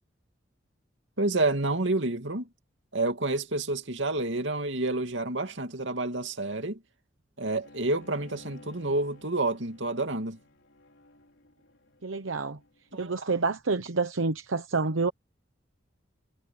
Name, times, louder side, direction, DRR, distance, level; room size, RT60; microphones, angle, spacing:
voice 1, 1.2-2.5 2.9-6.8 7.4-10.4 12.9-13.3, right 2 dB, 75° right, 2.5 m, -29 dB
Bowed string instrument, 7.6-12.9, left 2 dB, 75° left, 4.5 m, -54 dB
voice 2, 12.0-12.6 13.0-15.1, right 4 dB, 90° right, 1.0 m, -28 dB
head